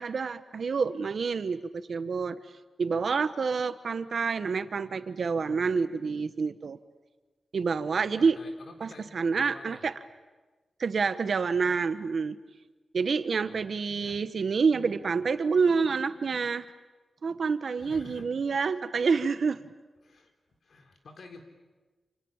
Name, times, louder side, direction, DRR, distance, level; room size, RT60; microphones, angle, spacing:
voice 1, 0.0-2.4 2.8-6.8 7.5-8.4 8.8-9.9 10.8-12.4 12.9-16.6 17.2-19.6, right 5 dB, 65° right, 12 dB, 1.2 m, -28 dB
voice 2, 8.2-9.8 13.4-13.6 14.0-14.2 17.8-18.3 20.0-20.3 20.6-21.4, left 3 dB, 65° left, 4 dB, 4.0 m, -49 dB
29.0 x 28.5 x 7.3 m, 1.2 s
wide cardioid pair, 110°, 0 cm